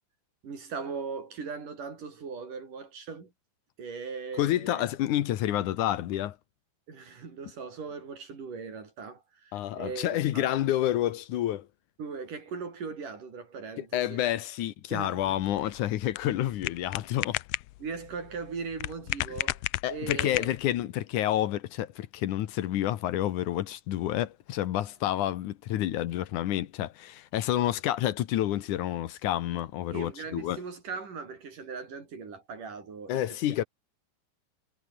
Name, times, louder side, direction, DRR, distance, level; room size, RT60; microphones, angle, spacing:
voice 1, 0.4-3.3 3.8-4.9 6.9-10.5 12.0-14.2 14.9-15.4 17.8-20.6 29.9-33.2, right 5 dB, 85° right, 6.6 m, -39 dB
voice 2, 4.4-6.4 9.5-11.7 13.8-17.4 19.8-30.6 33.1-33.6, left 13 dB, 75° left, 2.6 m, -29 dB
sound 1, 15.2-20.8, left 18 dB, 90° left, 1.4 m, -35 dB
omnidirectional pair, 3.6 m